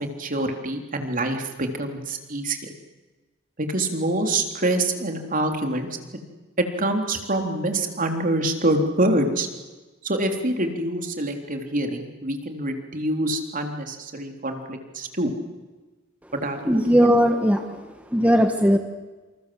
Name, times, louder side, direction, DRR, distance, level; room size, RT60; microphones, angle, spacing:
voice 1, 0.0-2.7 3.6-5.9 6.8-9.5 10.0-15.3 16.4-17.1, right 1 dB, 40° right, 4 dB, 3.6 m, -26 dB
voice 2, 16.7-17.6 18.1-18.8, equal, 5° right, 5 dB, 1.7 m, -18 dB
28.0 x 27.5 x 7.8 m, 1.2 s
head